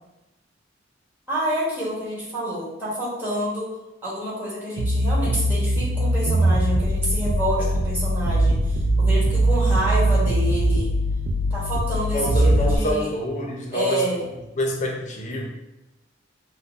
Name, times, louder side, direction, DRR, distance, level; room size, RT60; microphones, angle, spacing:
voice 1, 1.3-3.7 4.0-10.9 11.5-13.1 13.7-14.3, equal, 10° right, -9 dB, 1.1 m, -28 dB
sound 1, 4.8-12.8, right 1 dB, 80° right, 0.4 m, -21 dB
voice 2, 12.1-14.3 14.6-15.5, equal, 40° left, -1 dB, 0.6 m, -26 dB
3.7 x 2.1 x 2.5 m, 0.96 s
head